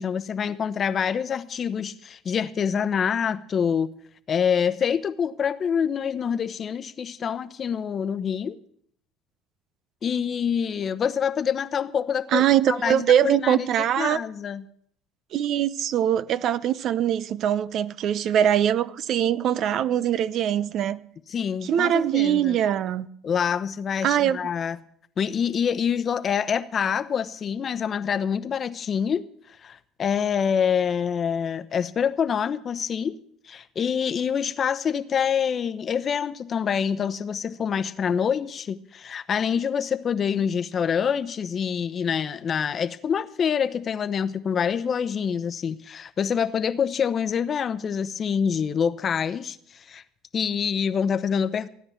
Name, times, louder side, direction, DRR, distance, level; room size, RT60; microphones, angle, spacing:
voice 1, 0.0-3.9 4.3-8.6 10.0-14.6 21.3-22.6 23.2-24.8 25.2-33.2 33.5-50.0 50.3-51.7, left 7 dB, 40° left, 0.9 m, -26 dB
voice 2, 12.3-14.2 15.3-21.0 21.6-23.1 24.0-24.4, right 10 dB, 55° right, 0.7 m, -22 dB
16.5 x 9.7 x 7.2 m
hypercardioid pair, 75°, 0 cm